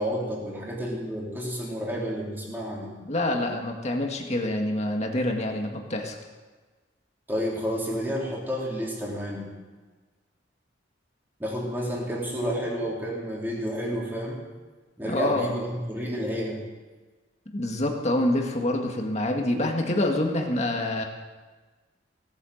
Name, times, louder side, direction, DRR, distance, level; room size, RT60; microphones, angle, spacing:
voice 1, 0.0-2.9 7.3-9.5 11.4-14.4 15.0-16.6, equal, 10° right, -3 dB, 3.4 m, -30 dB
voice 2, 3.0-6.2 15.1-15.5 17.5-21.0, left 1 dB, 35° left, 2 dB, 1.8 m, -26 dB
18.0 x 8.8 x 6.6 m, 1.3 s
head